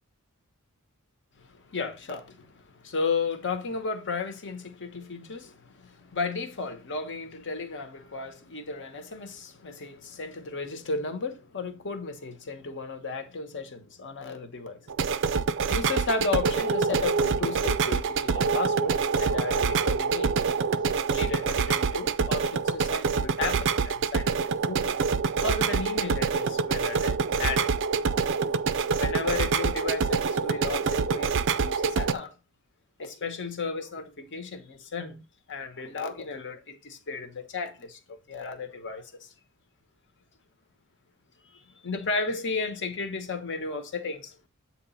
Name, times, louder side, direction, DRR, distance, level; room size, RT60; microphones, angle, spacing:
voice 1, 1.4-14.9 15.7-20.3 21.1-25.0 25.4-27.7 29.0-32.3 33.0-35.2 35.5-39.3 41.5-44.4, left 4 dB, 55° left, 1.1 m, -34 dB
sound 1, 14.9-32.1, right 5 dB, 55° right, 0.4 m, -26 dB
7.9 x 3.0 x 5.5 m
head